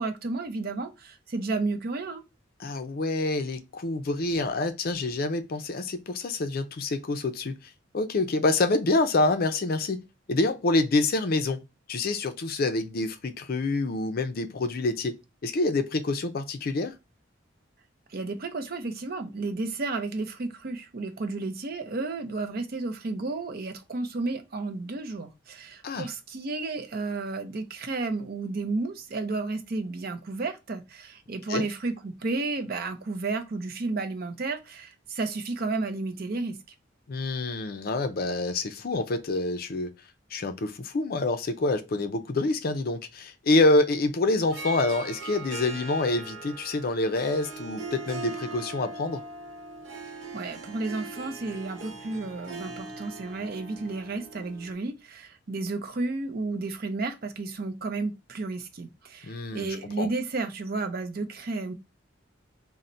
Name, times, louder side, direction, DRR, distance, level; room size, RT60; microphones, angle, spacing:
voice 1, 0.0-2.2 18.1-36.6 50.3-61.7, right 3 dB, 50° right, 0.6 m, -32 dB
voice 2, 2.6-7.6 7.9-10.0 10.3-11.6 11.9-16.9 25.8-26.1 31.5-31.7 37.1-39.9 40.3-49.2 59.3-60.1, left 2 dB, 50° left, 0.5 m, -27 dB
Harp, 44.4-54.7, right 3 dB, 75° right, 0.9 m, -40 dB
3.8 x 2.1 x 4.2 m
head